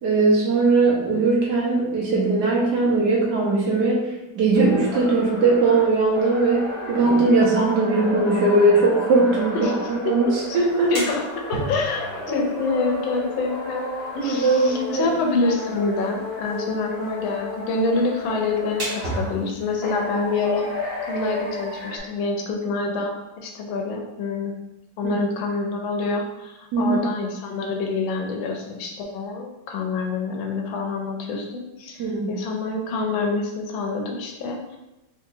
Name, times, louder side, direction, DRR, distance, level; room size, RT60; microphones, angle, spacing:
voice 1, 0.0-11.0 14.2-15.1 25.0-25.2 26.7-27.0 32.0-32.4, right 3 dB, 65° right, -3 dB, 1.4 m, -20 dB
sound 1, 4.5-15.1 15.4-19.4 19.8-22.0, left 2 dB, 60° left, 0.6 m, -33 dB
sound 2, 10.6-21.9, right 1 dB, 45° right, 0.7 m, -38 dB
voice 2, 10.9-13.9 14.1-20.7 21.0-24.5 25.0-34.8, left 3 dB, 85° left, 2 dB, 1.4 m, -27 dB
3.9 x 2.9 x 2.6 m, 0.95 s
omnidirectional pair, 2.1 m